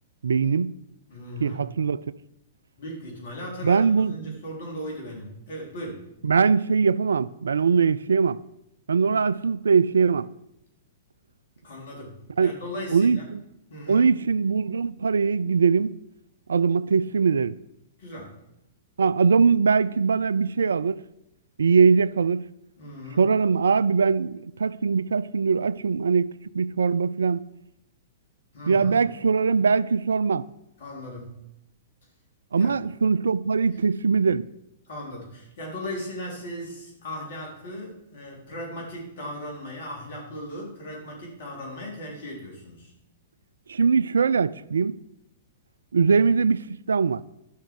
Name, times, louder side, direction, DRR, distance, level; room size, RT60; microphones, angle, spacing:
voice 1, 0.2-0.8 1.4-2.0 3.6-4.4 6.2-8.4 8.9-10.3 12.4-12.5 12.9-13.4 13.9-15.9 16.5-17.6 19.0-21.0 21.6-22.5 23.1-27.4 28.7-30.5 32.5-34.5 43.7-45.0 45.9-47.2, right 5 dB, 75° right, 0.3 m, -21 dB
voice 2, 1.1-1.6 2.8-6.1 11.6-13.2 13.7-14.1 18.0-18.3 22.8-23.2 28.5-29.0 30.8-31.4 32.5-32.7 34.8-42.9, equal, 60° left, 3.8 m, -37 dB
11.0 x 6.2 x 4.8 m
figure-of-eight pair, 110°, 0 cm